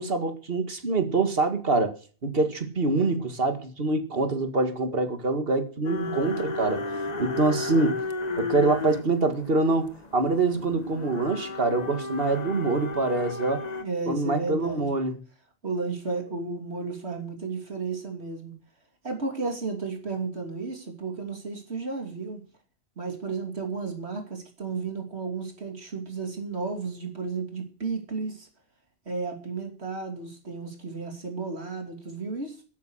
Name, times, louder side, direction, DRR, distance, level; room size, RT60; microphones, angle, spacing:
voice 1, 0.0-1.9 2.2-6.9 7.2-8.0 8.4-13.6 14.1-15.2, right 3 dB, 60° right, 2.1 m, -25 dB
sound 1, 5.8-13.8, left 4 dB, 40° left, 1.2 m, -34 dB
voice 2, 5.9-6.5 13.8-14.9 15.6-18.5 19.0-22.4 23.0-28.5 29.1-32.6, right 4 dB, 85° right, 3.1 m, -33 dB
13.0 x 10.0 x 6.3 m
omnidirectional pair, 1.1 m